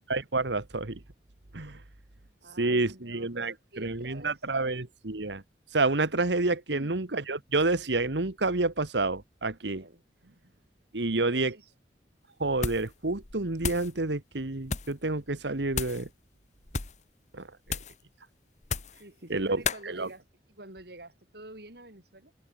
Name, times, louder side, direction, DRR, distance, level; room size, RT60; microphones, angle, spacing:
voice 1, 0.1-1.0 1.5-1.8 2.6-5.4 5.7-9.8 10.9-11.5 12.4-16.1 17.3-17.5 19.3-20.1, right 2 dB, 85° right, 1.6 m, -29 dB
voice 2, 2.4-4.8 9.7-10.0 11.1-11.7 19.0-20.2 20.6-22.3, right 1 dB, 65° right, 6.3 m, -48 dB
sound 1, 12.5-12.9 13.2-13.9 14.6-15.0 15.7-16.1 16.6-17.0 17.7-18.0 18.6-19.0 19.6-19.8, left 5 dB, 40° left, 1.5 m, -33 dB
head